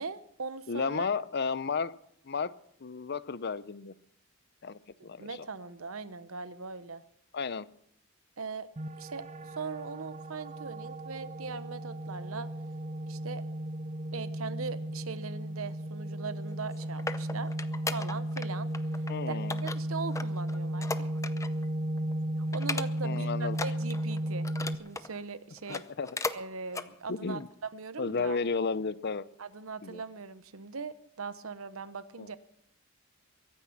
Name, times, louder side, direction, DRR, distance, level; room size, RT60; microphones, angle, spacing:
voice 1, 0.0-1.1 5.2-7.0 8.4-8.7 9.0-12.5 13.0-13.4 14.1-17.5 17.9-18.7 19.3-21.1 22.5-24.5 24.7-25.8 26.3-27.4 27.7-28.4 29.4-32.4, right 4 dB, 75° right, 13 dB, 1.0 m, -40 dB
voice 2, 0.7-1.9 2.2-2.5 2.8-3.9 4.6-5.3 7.3-7.7 19.1-19.6 23.0-23.6 25.7-26.1 27.1-27.5 28.0-29.3 29.8-30.0 32.2-32.4, left 4 dB, 50° left, 17 dB, 0.6 m, -33 dB
sound 1, 8.8-24.8, right 1 dB, 30° right, 0.8 m, -35 dB
sound 2, 16.5-18.5 18.7-19.1 19.5-21.7 22.0-22.1 22.5-23.2 23.5-25.1 25.6-26.4 26.7-26.9 27.4-27.5, left 3 dB, 15° left, 0.6 m, -37 dB
23.0 x 9.9 x 6.0 m, 0.72 s
head